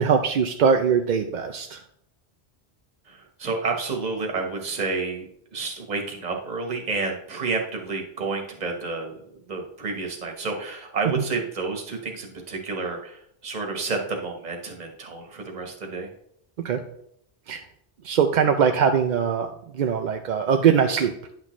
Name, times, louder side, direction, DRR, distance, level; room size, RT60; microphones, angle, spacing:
voice 1, 0.0-1.8 11.2-11.3 16.6-16.8 17.5-17.6 18.0-21.1, right 7 dB, 55° right, 5 dB, 0.5 m, -21 dB
voice 2, 3.1-5.2 5.5-16.1, right 4 dB, 40° right, 2 dB, 1.2 m, -30 dB
9.5 x 6.0 x 3.1 m, 0.71 s
omnidirectional pair, 1.1 m